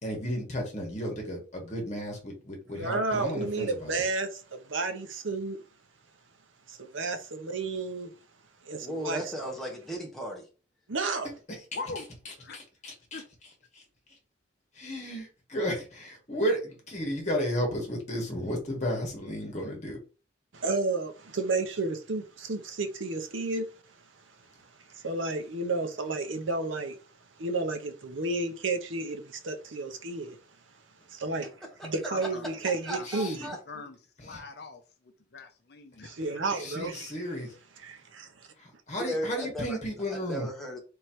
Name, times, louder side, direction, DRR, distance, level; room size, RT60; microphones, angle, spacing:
voice 1, 0.0-3.9 12.5-13.2 14.8-20.0 33.0-33.5 34.2-34.4 36.6-37.5 38.6-40.5, equal, 35° left, 1.5 m, -33 dB
voice 2, 2.7-5.6 6.7-8.1 8.6-9.5 10.9-11.3 20.5-23.7 24.1-27.1 27.4-30.4 31.1-33.5 36.0-37.1 37.8-38.5, right 3 dB, 75° right, 0.8 m, -32 dB
voice 3, 8.8-10.5 31.8-31.9 32.9-33.6 39.0-39.8 40.2-40.8, equal, ahead, 1.0 m, -35 dB
voice 4, 11.7-12.1 12.4-12.6 13.1-13.3 32.1-32.4 32.9-33.1 33.7-36.4, left 3 dB, 55° left, 0.6 m, -42 dB
3.5 x 3.2 x 4.5 m
head